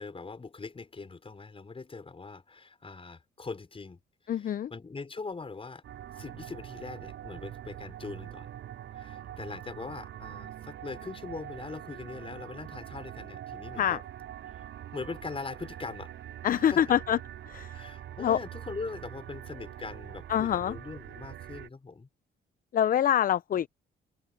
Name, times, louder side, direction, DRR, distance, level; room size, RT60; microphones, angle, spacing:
voice 1, 0.0-4.0 4.2-5.8 6.2-8.5 8.9-14.0 14.5-14.6 14.9-16.1 16.5-16.8 17.7-22.1, left 4 dB, 30° left, 5.5 m, -41 dB
voice 2, 4.3-4.7 13.8-14.0 16.4-17.2 17.5-17.8 18.2-18.4 20.3-20.8 22.7-23.7, left 10 dB, 45° left, 0.5 m, -25 dB
sound 1, 5.8-21.7, right 11 dB, 80° right, 5.0 m, -44 dB
cardioid pair, 90°, 20 cm